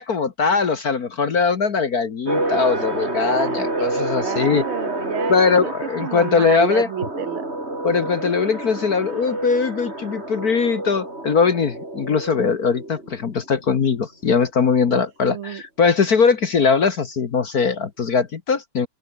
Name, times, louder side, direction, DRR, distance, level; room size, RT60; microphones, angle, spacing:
voice 1, 0.0-4.6 5.3-6.9 7.8-18.9, left 5 dB, 50° left, 1.8 m, -20 dB
sound 1, 2.3-13.5, right 1 dB, 30° right, 6.3 m, -28 dB
voice 2, 3.2-5.7 6.0-7.5 14.9-15.6, right 10 dB, 85° right, 2.2 m, -30 dB
open air
omnidirectional pair, 2.3 m